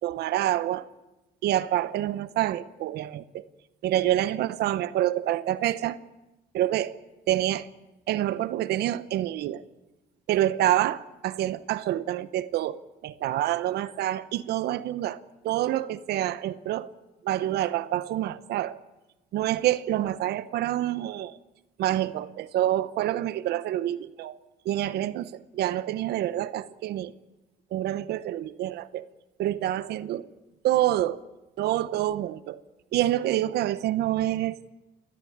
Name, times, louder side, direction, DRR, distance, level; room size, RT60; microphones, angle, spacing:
voice 1, 0.0-0.9 1.4-3.4 3.8-6.0 6.5-7.0 7.3-7.7 8.1-9.6 10.3-16.9 17.2-18.8 19.3-21.4 21.8-24.4 24.6-27.1 27.7-29.1 29.4-30.3 30.6-31.2 31.6-32.6 32.9-34.6, right 13 dB, 75° right, 16 dB, 1.0 m, -27 dB
28.5 x 13.0 x 8.8 m, 1.0 s
cardioid pair, 110°, 17 cm